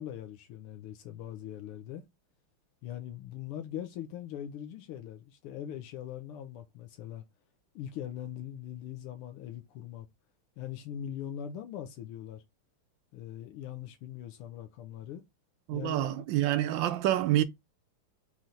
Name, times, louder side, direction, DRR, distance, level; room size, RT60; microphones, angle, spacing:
voice 1, 0.0-2.0 2.8-7.2 7.7-10.1 10.6-12.4 13.1-15.2 15.7-16.1, left 10 dB, 90° left, 1.6 m, -41 dB
voice 2, 15.7-17.4, right 13 dB, 75° right, 1.1 m, -27 dB
4.3 x 3.1 x 3.8 m
omnidirectional pair, 2.4 m